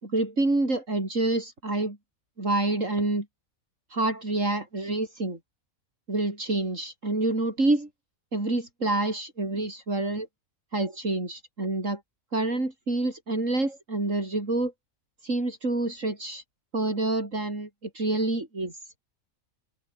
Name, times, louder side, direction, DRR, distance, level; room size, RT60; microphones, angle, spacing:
voice 1, 0.0-2.0 2.4-3.3 3.9-5.4 6.1-7.9 8.3-10.3 10.7-12.0 12.3-14.7 15.2-16.4 16.7-17.7 17.9-18.8, right 2 dB, 60° right, 5.8 m, -27 dB
omnidirectional pair, 1.5 m